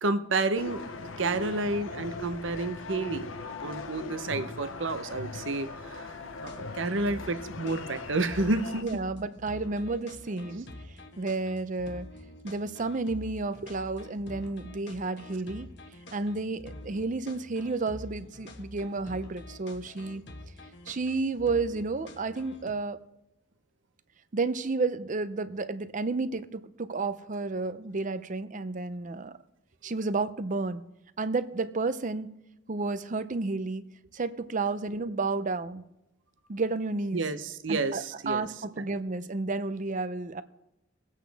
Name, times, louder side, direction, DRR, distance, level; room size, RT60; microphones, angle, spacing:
voice 1, 0.0-0.8 1.2-3.3 3.6-6.1 6.4-8.8 37.1-38.5, right 2 dB, 75° right, 0.8 m, -30 dB
sound 1, 0.5-8.8, left 3 dB, 90° left, 0.9 m, -39 dB
sound 2, 6.4-22.7, left 1 dB, 60° left, 1.4 m, -46 dB
voice 2, 8.8-10.7 11.2-12.1 12.4-15.7 16.1-20.2 20.9-23.0 24.3-29.3 29.8-30.8 31.2-32.3 32.7-35.8 36.5-37.2 37.7-40.4, right 3 dB, 40° right, 0.6 m, -31 dB
22.5 x 8.4 x 3.4 m
head